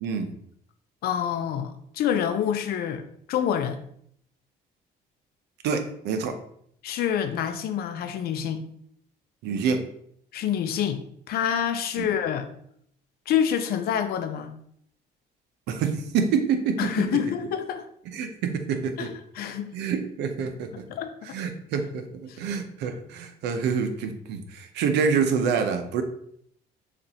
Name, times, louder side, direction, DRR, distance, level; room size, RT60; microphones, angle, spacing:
voice 1, 1.0-3.0 3.3-3.8 6.8-8.7 10.3-12.5 13.3-14.5 16.8-17.8 19.0-19.7 20.9-21.4 22.3-22.4, left 9 dB, 65° left, 8 dB, 0.6 m, -27 dB
voice 2, 5.6-6.4 9.4-9.8 12.0-12.1 15.7-16.9 18.1-19.1 19.7-20.7 21.3-26.0, right 6 dB, 85° right, 7 dB, 0.7 m, -27 dB
6.6 x 2.5 x 2.8 m, 0.68 s
cardioid pair, 110°, 17 cm